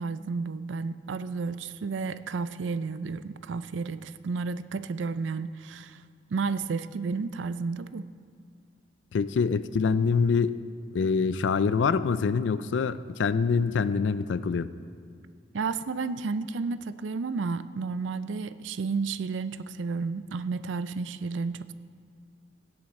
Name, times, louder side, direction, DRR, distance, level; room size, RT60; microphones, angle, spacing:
voice 1, 0.0-6.0 6.3-8.0 15.5-21.7, right 4 dB, 75° right, 14 dB, 0.4 m, -32 dB
voice 2, 9.1-10.6 10.9-14.7, left 5 dB, 70° left, 15 dB, 0.4 m, -25 dB
16.5 x 7.9 x 4.2 m, 2.2 s
head